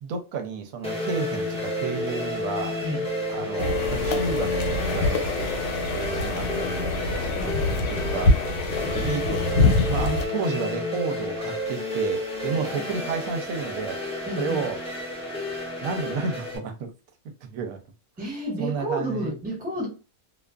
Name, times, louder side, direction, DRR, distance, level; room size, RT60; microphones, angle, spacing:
voice 1, 0.0-2.7 3.3-4.5 4.9-5.5 5.9-7.3 7.9-8.3 8.8-14.0 14.4-14.8 15.8-16.9 17.5-17.8 18.6-19.3, right 5 dB, 70° right, 0.9 m, -31 dB
sound 1, 0.8-16.6, left 1 dB, 10° left, 0.3 m, -31 dB
sound 2, 3.6-10.3, left 2 dB, 80° left, 1.1 m, -25 dB
voice 2, 7.4-7.7 10.0-10.6 12.5-13.1 14.2-14.7 18.2-19.9, right 1 dB, 10° right, 0.7 m, -32 dB
2.5 x 2.4 x 2.2 m
omnidirectional pair, 1.7 m